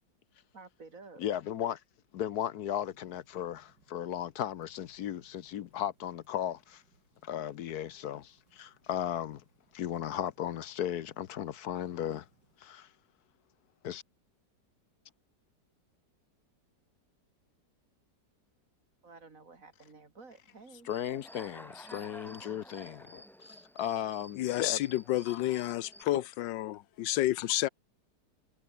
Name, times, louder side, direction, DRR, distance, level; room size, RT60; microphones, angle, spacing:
voice 1, 0.5-1.2 19.0-20.9, right 4 dB, 45° right, 3.4 m, -52 dB
voice 2, 1.2-1.8 2.1-6.8 7.2-9.4 9.7-12.3 12.6-12.9 13.8-14.0 20.8-24.8 26.1-26.2, left 10 dB, 65° left, 1.2 m, -36 dB
sound 1, 2.7-12.6, right 3 dB, 75° right, 5.0 m, -71 dB
Human voice / Cricket, 20.9-26.0, equal, ahead, 1.4 m, -51 dB
voice 3, 24.4-27.7, left 14 dB, 85° left, 1.4 m, -30 dB
omnidirectional pair, 1.9 m